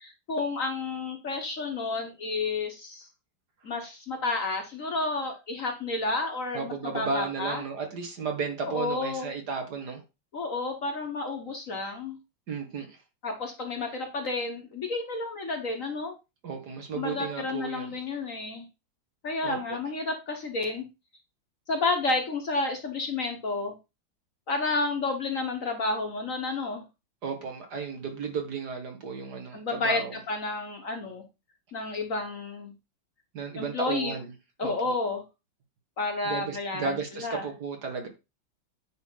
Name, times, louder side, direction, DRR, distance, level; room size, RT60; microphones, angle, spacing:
voice 1, 0.0-3.1 3.6-7.6 8.7-9.3 10.3-12.2 13.2-16.1 16.9-18.6 19.2-20.8 21.7-23.7 24.5-26.8 29.5-31.2 31.7-32.7 33.6-34.1 34.6-35.2 36.0-37.5, left 3 dB, 45° left, 4 dB, 1.4 m, -31 dB
voice 2, 6.5-10.0 12.5-13.0 16.4-18.0 19.4-19.8 27.2-30.2 33.3-34.3 34.6-34.9 36.2-38.1, right 5 dB, 55° right, 4 dB, 2.1 m, -34 dB
9.2 x 3.4 x 5.6 m, 0.26 s
omnidirectional pair, 2.1 m